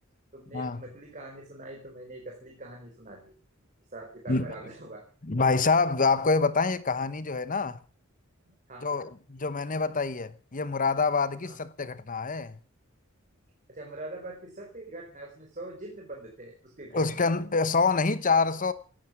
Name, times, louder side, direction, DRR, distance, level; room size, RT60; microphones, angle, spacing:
voice 1, 0.3-3.4 3.9-5.0 8.5-9.1 11.4-11.5 13.7-17.3, right 2 dB, 40° right, 4.0 m, -43 dB
voice 2, 5.3-7.8 8.8-12.6 16.9-18.7, left 4 dB, 40° left, 1.0 m, -26 dB
17.5 x 13.0 x 6.1 m
head